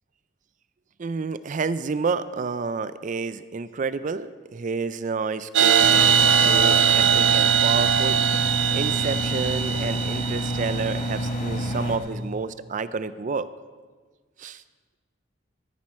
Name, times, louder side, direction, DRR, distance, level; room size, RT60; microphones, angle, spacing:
voice 1, 1.0-8.2 8.7-13.5 14.4-14.6, right 4 dB, 45° right, 14 dB, 0.4 m, -30 dB
sound 1, 5.5-11.1, right 8 dB, 80° right, 0.8 m, -21 dB
Engine, 5.8-12.0, equal, 45° left, 1.2 m, -28 dB
14.0 x 10.5 x 4.3 m, 1.4 s
head